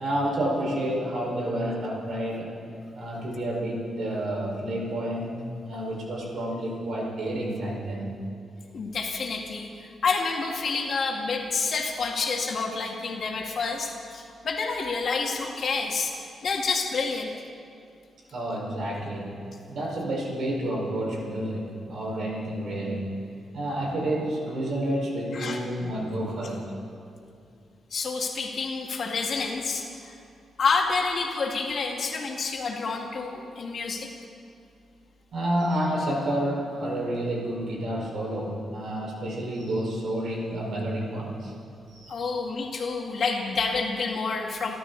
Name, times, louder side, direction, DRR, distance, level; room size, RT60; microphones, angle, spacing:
voice 1, 0.0-2.6 2.9-8.2 18.3-23.2 23.5-26.6 35.3-41.5 41.9-42.3, right 1 dB, 65° right, -2 dB, 5.1 m, -30 dB
voice 2, 8.7-16.2 16.4-17.3 25.3-25.6 27.9-30.2 30.6-34.1 42.1-44.8, left 4 dB, 55° left, 1 dB, 2.2 m, -28 dB
27.5 x 12.5 x 4.1 m, 2.5 s
cardioid pair, 100°, 0 cm